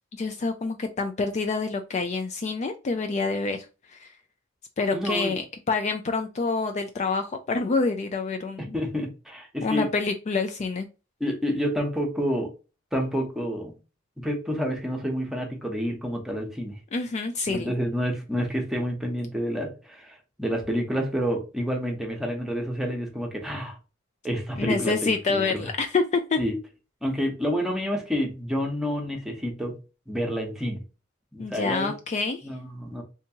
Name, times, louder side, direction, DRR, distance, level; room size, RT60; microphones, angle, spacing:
voice 1, 0.1-3.7 3.9-4.1 4.8-8.8 9.6-10.9 16.9-17.7 24.6-26.4 31.4-32.4, left 4 dB, 35° left, 0.3 m, -27 dB
voice 2, 4.9-5.4 8.6-9.9 11.2-12.5 12.9-13.8 14.2-16.7 17.5-23.8 24.2-25.7 26.4-26.6 27.0-29.8 30.1-30.8 31.3-31.9 32.4-33.0, equal, ahead, 0.9 m, -29 dB
3.4 x 2.9 x 2.8 m
head